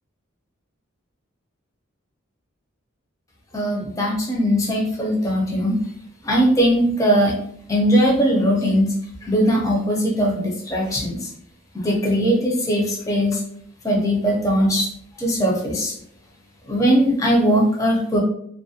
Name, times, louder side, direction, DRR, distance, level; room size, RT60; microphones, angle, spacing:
voice 1, 3.5-5.8 6.2-7.3 7.7-8.9 9.3-11.2 11.7-13.4 13.8-14.9 15.2-15.9 16.7-18.2, equal, 15° left, -1 dB, 0.4 m, -19 dB
2.4 x 2.1 x 2.6 m, 0.66 s
head